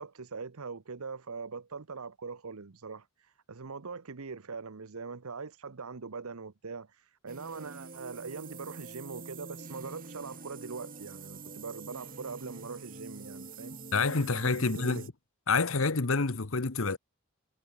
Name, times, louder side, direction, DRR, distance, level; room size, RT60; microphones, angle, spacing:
voice 1, 0.0-13.8 14.6-15.0, right 4 dB, 90° right, 0.9 m, -42 dB
sound 1, 7.3-15.1, right 3 dB, 40° right, 3.1 m, -46 dB
voice 2, 13.9-15.1 15.5-17.0, left 4 dB, 65° left, 1.2 m, -28 dB
head